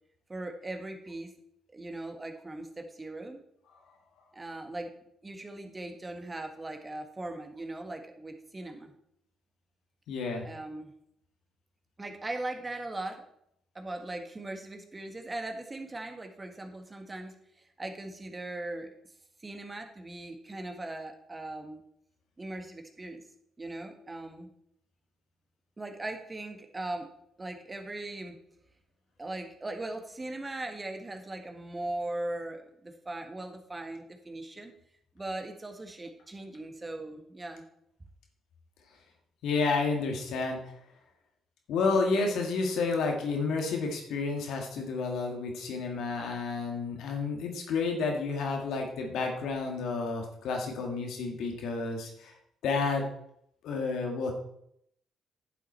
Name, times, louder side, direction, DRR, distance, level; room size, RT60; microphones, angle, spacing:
voice 1, 0.3-1.3 1.7-3.4 4.3-4.9 5.2-8.9 10.4-10.9 12.0-13.2 13.7-18.9 19.4-21.8 22.4-23.2 23.6-24.5 25.8-27.1 27.4-28.4 29.2-34.7 35.1-37.6, right 2 dB, 25° right, 4 dB, 1.6 m, -39 dB
voice 2, 10.1-10.5 39.4-40.7 41.7-52.3 52.6-53.0 53.6-54.3, left 4 dB, 65° left, 2 dB, 1.8 m, -30 dB
11.0 x 7.0 x 4.3 m, 0.74 s
hypercardioid pair, 45°, 0 cm